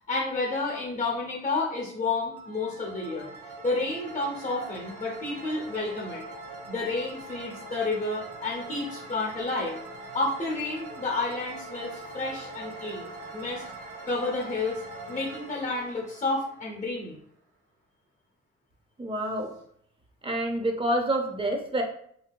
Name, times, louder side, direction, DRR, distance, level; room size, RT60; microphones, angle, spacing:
voice 1, 0.1-3.3 3.6-6.2 6.7-9.8 10.1-13.6 14.0-14.8 15.1-17.2, left 3 dB, 25° left, -2 dB, 0.7 m, -30 dB
sound 1, 2.3-17.1, right 2 dB, 50° right, 0.9 m, -42 dB
voice 2, 19.0-19.5 20.2-21.8, right 1 dB, 20° right, 1 dB, 0.6 m, -27 dB
2.7 x 2.7 x 2.2 m, 0.66 s
cardioid pair, 90°, 30 cm